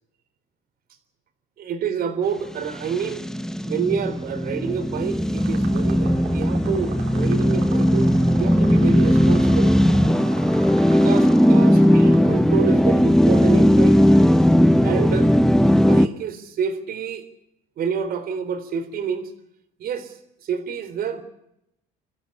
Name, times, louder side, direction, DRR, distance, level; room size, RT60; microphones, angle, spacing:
voice 1, 1.6-3.3 3.7-9.7 10.8-14.2 14.8-15.3 15.8-17.3 17.8-19.3 19.8-21.2, right 6 dB, 60° right, 9 dB, 3.9 m, -28 dB
sound 1, 2.8-16.1, equal, 5° left, 0.9 m, -17 dB
sound 2, 5.4-12.2, right 8 dB, 90° right, 4.7 m, -40 dB
27.5 x 15.0 x 8.6 m, 0.84 s
cardioid pair, 110°, 17 cm